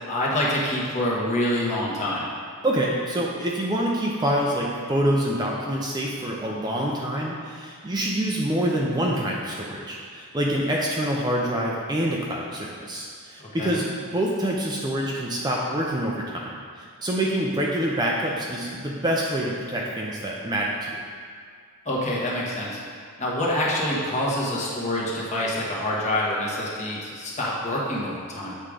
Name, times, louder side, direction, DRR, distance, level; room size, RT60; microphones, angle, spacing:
voice 1, 0.1-2.2 13.4-13.7 21.8-22.8 23.2-28.5, left 1 dB, 30° left, -5 dB, 1.3 m, -26 dB
voice 2, 2.6-21.0, right 1 dB, 20° right, -3 dB, 0.5 m, -26 dB
7.6 x 3.7 x 4.9 m, 2.1 s
head